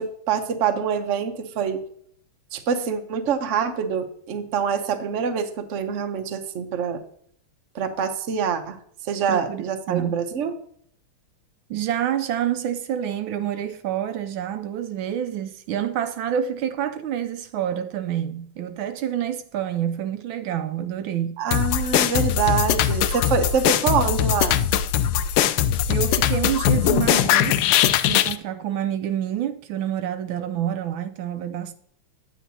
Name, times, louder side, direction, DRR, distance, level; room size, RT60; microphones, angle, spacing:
voice 1, 0.0-1.8 2.5-7.0 7.7-8.8 9.1-10.5 21.4-24.6, right 6 dB, 55° right, 0.9 m, -25 dB
voice 2, 9.3-10.2 11.7-21.4 25.9-27.6 28.1-31.7, right 10 dB, 75° right, 1.3 m, -28 dB
sound 1, 21.5-28.4, left 10 dB, 85° left, 1.4 m, -21 dB
9.1 x 9.0 x 2.8 m
omnidirectional pair, 2.3 m